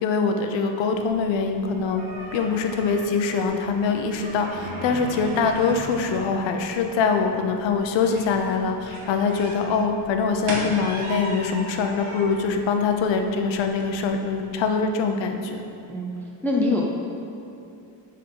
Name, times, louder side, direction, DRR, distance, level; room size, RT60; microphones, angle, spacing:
voice 1, 0.0-2.0 2.3-15.6, left 5 dB, 75° left, 5 dB, 0.8 m, -23 dB
sound 1, 0.9-14.8, right 1 dB, 60° right, 1.6 m, -38 dB
voice 2, 16.4-16.8, left 2 dB, 5° left, -2 dB, 0.3 m, -22 dB
8.6 x 3.9 x 5.4 m, 2.8 s
cardioid pair, 170°, 45 cm